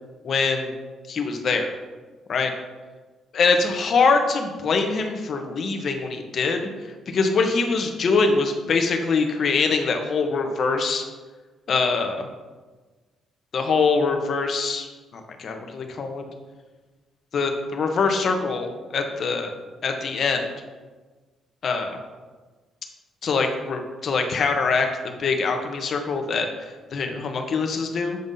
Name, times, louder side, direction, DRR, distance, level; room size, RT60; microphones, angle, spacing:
voice 1, 0.2-0.7 1.1-1.7 2.3-2.5 3.3-6.7 7.1-11.0 11.7-12.3 13.5-14.9 15.1-16.2 17.3-19.5 19.8-20.5 21.6-22.0 23.2-28.2, left 4 dB, 55° left, 5 dB, 0.8 m, -23 dB
7.9 x 5.3 x 2.7 m, 1.3 s
cardioid pair, 90°, 0 cm